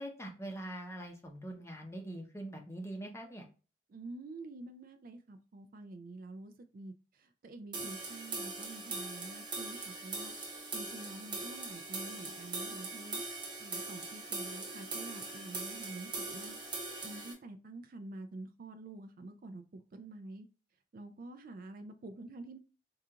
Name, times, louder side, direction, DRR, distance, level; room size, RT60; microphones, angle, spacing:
voice 1, 0.0-3.5, right 1 dB, 15° left, 0.7 m, -43 dB
voice 2, 3.9-10.3 10.7-13.2 13.6-16.6 17.0-20.5 20.9-22.6, right 2 dB, 50° right, 0.4 m, -48 dB
sound 1, 7.7-17.3, right 3 dB, 25° right, 1.0 m, -41 dB
4.7 x 2.4 x 2.8 m
head